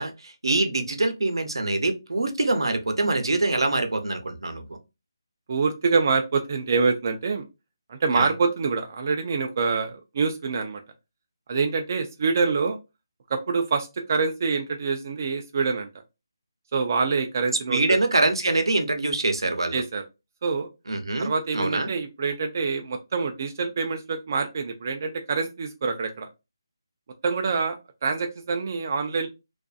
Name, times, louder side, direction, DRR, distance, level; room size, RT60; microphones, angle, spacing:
voice 1, 0.0-4.8 8.1-8.3 17.7-19.8 20.9-21.9, right 2 dB, 85° right, 0.7 m, -24 dB
voice 2, 5.5-7.4 7.9-10.8 11.5-12.8 13.3-15.9 16.7-18.0 19.7-20.0 20.4-20.7 21.2-26.3 27.2-29.3, right 4 dB, 35° right, 0.3 m, -26 dB
2.4 x 2.4 x 2.3 m
figure-of-eight pair, 165°, 2 cm